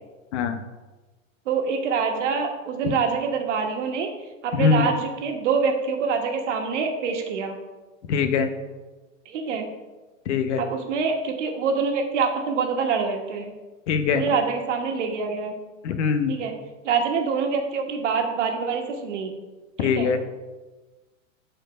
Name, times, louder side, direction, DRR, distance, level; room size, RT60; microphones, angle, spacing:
voice 1, 1.4-4.1 4.4-7.6 9.2-9.7 10.6-13.5 14.1-15.5 16.3-16.5 16.8-19.3 19.8-20.1, right 5 dB, 65° right, 3 dB, 1.5 m, -25 dB
voice 2, 4.5-4.8 8.1-8.5 10.3-10.6 13.9-14.2 15.8-16.3 19.8-20.2, left 6 dB, 60° left, 8 dB, 1.0 m, -22 dB
9.0 x 4.6 x 5.1 m, 1.2 s
supercardioid pair, 160°, 39 cm